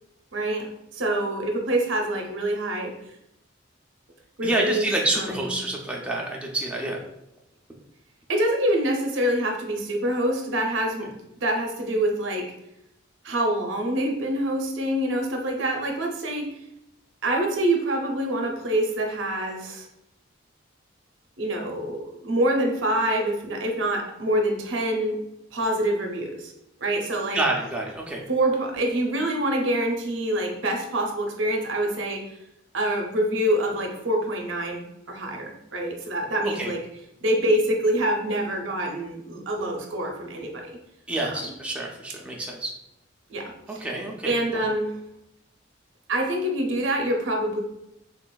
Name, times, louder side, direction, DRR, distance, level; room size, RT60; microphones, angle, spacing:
voice 1, 0.3-2.9 4.4-4.9 5.1-5.5 8.3-11.1 11.4-12.5 13.2-16.5 17.2-19.9 21.4-25.2 25.5-26.5 26.8-27.4 28.3-32.2 32.7-36.8 37.2-40.8 41.2-41.3 43.3-43.8 44.2-44.9 46.1-47.6, right 1 dB, 65° right, 2 dB, 0.6 m, -26 dB
voice 2, 4.4-7.0 27.3-28.2 36.4-36.7 41.1-42.7 43.8-44.6, right 2 dB, 5° right, -2 dB, 0.4 m, -28 dB
3.7 x 2.4 x 2.3 m, 0.82 s
head